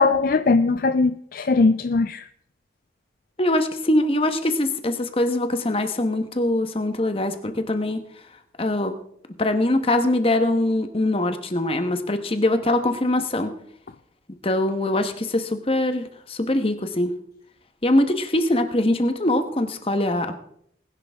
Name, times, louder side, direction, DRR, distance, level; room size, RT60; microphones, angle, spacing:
voice 1, 0.0-2.2, left 3 dB, 50° left, 0.4 m, -19 dB
voice 2, 3.4-8.0 8.6-8.9 9.4-13.5 14.3-17.1 17.8-20.4, left 1 dB, 30° left, 1.1 m, -22 dB
19.5 x 10.5 x 3.5 m
head